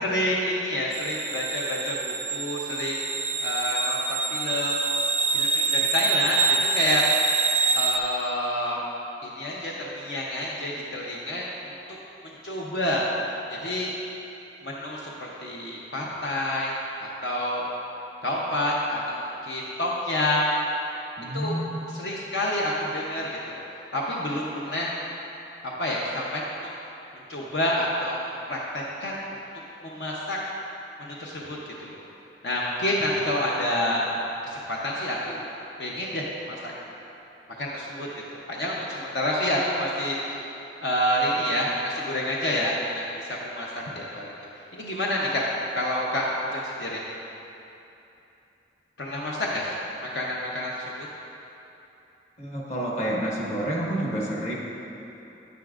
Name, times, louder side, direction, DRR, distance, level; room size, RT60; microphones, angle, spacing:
voice 1, 0.0-4.8 5.3-7.1 7.7-8.8 9.2-11.7 12.2-13.0 13.5-13.9 14.6-16.7 17.0-17.7 18.2-20.5 21.3-21.6 21.9-23.6 23.9-24.9 25.8-26.5 27.3-29.2 29.8-30.4 31.0-32.0 32.4-34.0 34.4-35.5 35.8-36.7 37.6-40.4 40.8-44.3 44.7-45.4 45.8-47.0 49.0-51.1, left 1 dB, 70° left, -4 dB, 0.8 m, -28 dB
sound 1, 0.9-8.0, right 4 dB, 40° right, 0.4 m, -26 dB
voice 2, 21.2-22.0 52.4-54.5, right 1 dB, 40° left, -3 dB, 1.2 m, -29 dB
9.5 x 9.4 x 2.5 m, 3.0 s
head